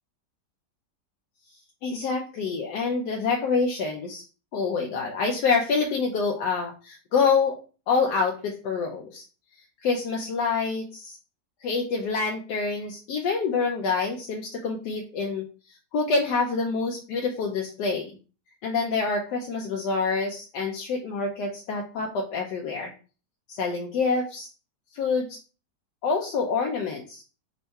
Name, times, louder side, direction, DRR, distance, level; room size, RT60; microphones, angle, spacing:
voice 1, 1.8-4.2 4.5-7.6 7.9-9.2 9.8-11.2 11.6-15.5 15.9-18.1 18.6-22.9 23.5-24.5 24.9-25.4 26.0-27.2, left 4 dB, 75° left, 1 dB, 1.2 m, -26 dB
3.6 x 2.2 x 4.0 m, 0.36 s
omnidirectional pair, 1.9 m